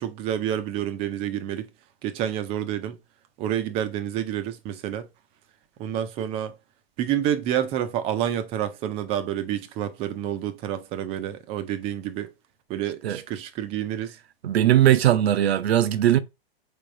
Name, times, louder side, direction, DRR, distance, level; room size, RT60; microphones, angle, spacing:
voice 1, 0.0-1.7 2.0-3.0 3.4-5.1 5.8-6.5 7.0-12.3 12.7-14.2, right 10 dB, 20° right, 0.4 m, -28 dB
voice 2, 14.4-16.2, right 12 dB, 75° right, 0.6 m, -19 dB
4.3 x 3.4 x 2.5 m
hypercardioid pair, 130°, 31 cm